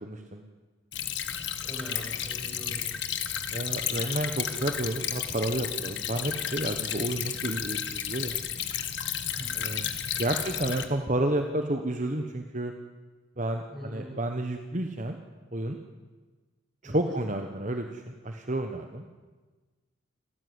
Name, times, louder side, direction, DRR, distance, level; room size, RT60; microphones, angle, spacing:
voice 1, 0.0-0.4 3.5-8.4 9.5-9.9 10.2-12.7 13.4-15.2 15.5-15.8 16.8-19.0, right 1 dB, 35° right, 5 dB, 1.2 m, -31 dB
Stream / Trickle dribble, 0.9-10.9, left 9 dB, 55° left, 1.5 m, -32 dB
voice 2, 1.4-2.8 6.6-6.7 9.3-9.5 10.0-10.2 13.7-14.1 16.8-17.2, equal, ahead, -4 dB, 7.4 m, -42 dB
29.0 x 13.5 x 9.6 m, 1.4 s
head